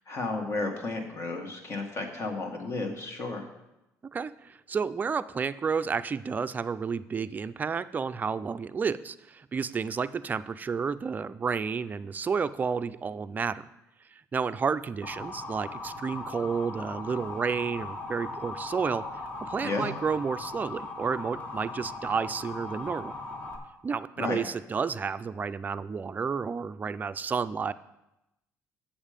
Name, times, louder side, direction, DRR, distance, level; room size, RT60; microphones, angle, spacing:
voice 1, 0.1-3.5 19.6-19.9 24.2-24.4, left 3 dB, 45° left, 3 dB, 1.8 m, -32 dB
voice 2, 4.1-13.6 14.3-19.0 19.4-23.1 23.8-27.7, right 5 dB, 30° right, 11 dB, 0.4 m, -31 dB
Motor vehicle (road) / Siren, 15.0-23.6, left 2 dB, 30° left, 1.5 m, -39 dB
7.2 x 7.2 x 5.1 m, 0.92 s
supercardioid pair, 90°, 6 cm